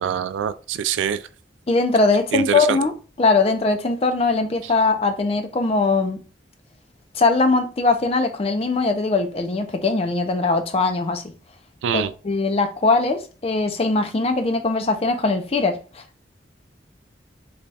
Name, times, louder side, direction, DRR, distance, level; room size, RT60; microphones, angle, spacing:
voice 1, 0.0-1.2 2.3-2.8 11.8-12.1, right 8 dB, 90° right, 0.3 m, -24 dB
voice 2, 1.7-6.2 7.1-11.3 11.9-16.0, left 3 dB, 30° left, 0.4 m, -21 dB
3.3 x 2.3 x 4.0 m
head